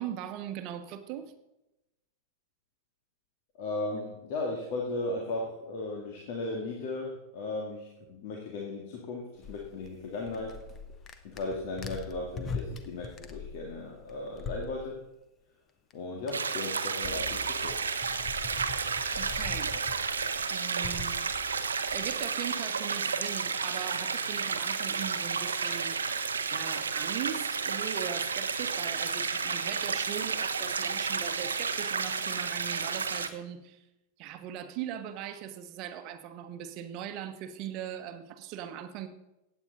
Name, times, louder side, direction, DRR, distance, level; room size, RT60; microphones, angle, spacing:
voice 1, 0.0-1.3 19.2-19.7 20.5-21.2 21.9-26.0 26.5-33.8 34.2-39.1, right 10 dB, 40° right, 9 dB, 1.2 m, -39 dB
voice 2, 3.6-10.6 11.2-15.0 15.9-17.8, left 2 dB, 50° left, 0 dB, 2.1 m, -36 dB
sound 1, 9.4-15.0 15.9-16.0 16.2-22.2, left 4 dB, 25° left, 1.2 m, -42 dB
sound 2, 16.3-33.3, right 5 dB, 70° right, 0.9 m, -31 dB
15.5 x 9.4 x 4.1 m, 0.92 s
figure-of-eight pair, 90°, 0 cm